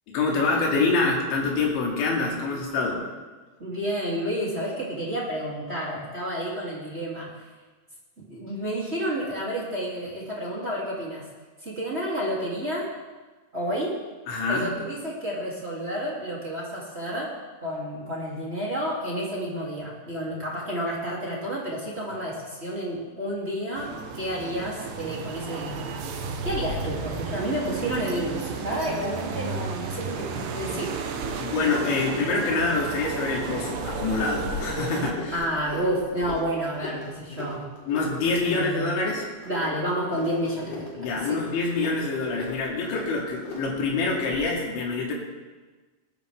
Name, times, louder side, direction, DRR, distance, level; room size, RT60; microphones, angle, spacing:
voice 1, 0.1-3.0 14.3-14.7 31.4-35.3 37.9-39.3 41.0-45.1, left 3 dB, 75° left, -3 dB, 4.8 m, -26 dB
voice 2, 3.6-7.3 8.2-11.2 11.6-12.9 13.5-13.9 14.5-17.3 17.6-25.9 26.4-30.9 35.3-37.6 38.4-39.0 39.4-41.4, equal, 20° right, -5 dB, 2.0 m, -30 dB
sound 1, 23.7-35.1, right 5 dB, 70° right, 2.2 m, -33 dB
sound 2, 26.5-44.5, left 3 dB, 40° left, 4.8 m, -40 dB
19.5 x 13.0 x 3.5 m, 1.3 s
omnidirectional pair, 5.3 m